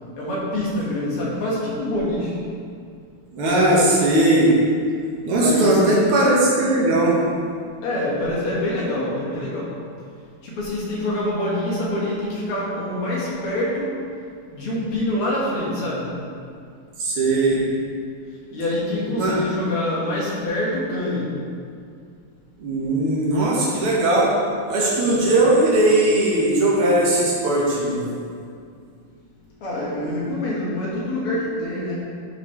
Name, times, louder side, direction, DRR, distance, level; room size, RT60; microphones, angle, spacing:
voice 1, 0.2-2.4 5.4-6.0 7.8-9.7 10.4-13.9 14.5-16.1 18.5-21.3 29.6-32.0, left 1 dB, 80° left, -5 dB, 2.6 m, -25 dB
voice 2, 3.3-4.5 5.2-7.2 17.0-17.6 19.1-19.3 22.6-24.3 24.7-28.1, right 1 dB, 80° right, -5 dB, 2.3 m, -18 dB
11.0 x 5.5 x 3.3 m, 2.3 s
omnidirectional pair, 2.4 m